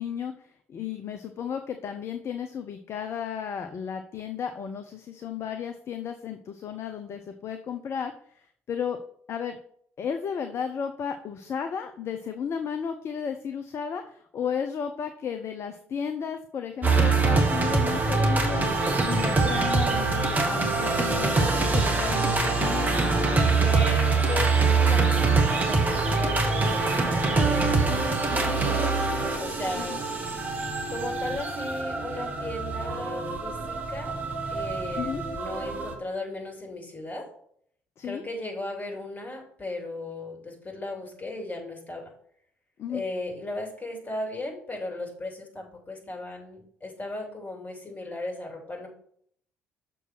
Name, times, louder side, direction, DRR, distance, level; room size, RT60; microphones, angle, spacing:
voice 1, 0.0-9.0 9.3-9.6 10.0-18.7 19.0-23.0 28.3-28.6 29.7-30.0 34.9-35.2 38.0-38.2 42.8-43.0, left 7 dB, 40° left, 7 dB, 0.6 m, -34 dB
sound 1, 16.8-36.0, right 3 dB, 25° right, 1.6 m, -24 dB
sound 2, 18.7-31.8, right 4 dB, 80° right, 0.8 m, -41 dB
voice 2, 23.6-24.5 24.8-28.9 29.4-30.0 30.9-34.1 34.5-37.3 38.0-42.1 42.9-48.9, left 2 dB, 25° left, 1 dB, 2.8 m, -36 dB
6.6 x 4.6 x 6.0 m, 0.63 s
figure-of-eight pair, 50°, 7 cm